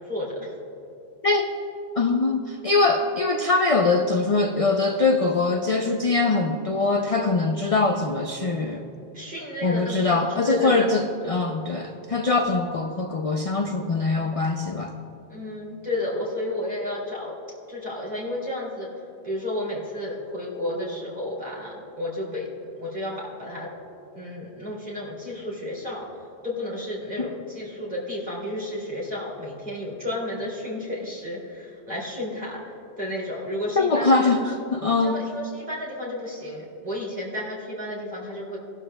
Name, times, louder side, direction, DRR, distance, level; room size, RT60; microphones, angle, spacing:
voice 1, 0.1-0.5 9.1-11.0 15.3-17.3 17.7-18.9 19.2-22.5 22.8-23.7 24.1-26.0 26.4-32.7 33.0-34.3 35.0-38.6, left 1 dB, 50° right, -5 dB, 2.9 m, -32 dB
voice 2, 2.0-8.8 9.6-14.9 27.2-27.3 33.8-35.2, left 3 dB, 45° left, 3 dB, 0.5 m, -22 dB
18.5 x 12.0 x 2.2 m, 2.8 s
omnidirectional pair, 1.1 m